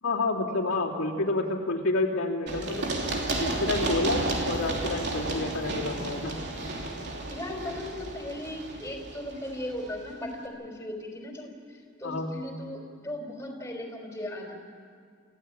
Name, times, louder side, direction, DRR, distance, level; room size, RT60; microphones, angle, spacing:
voice 1, 0.0-2.9 3.3-6.4 12.0-12.3, left 2 dB, 80° left, -3 dB, 3.0 m, -29 dB
Run, 2.5-10.1, right 2 dB, 55° right, 3.0 m, -32 dB
voice 2, 7.3-14.5, left 1 dB, 10° left, 1 dB, 4.3 m, -37 dB
29.0 x 16.0 x 8.8 m, 2.1 s
head